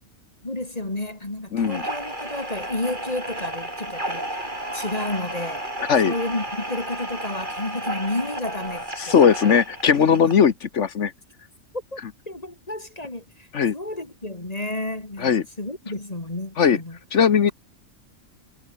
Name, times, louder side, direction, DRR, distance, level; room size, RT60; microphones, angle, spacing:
voice 1, 0.4-4.4 4.7-5.6 6.0-9.2 10.1-10.3 11.9-12.0 12.3-13.5 13.7-17.0, left 2 dB, 30° left, 2.8 m, -31 dB
voice 2, 1.5-1.8 5.9-6.1 9.0-11.1 13.5-13.7 15.2-15.4 16.6-16.8 17.1-17.5, left 7 dB, 65° left, 1.4 m, -18 dB
sound 1, 1.6-10.5, right 1 dB, 40° right, 7.6 m, -32 dB
omnidirectional pair, 1.3 m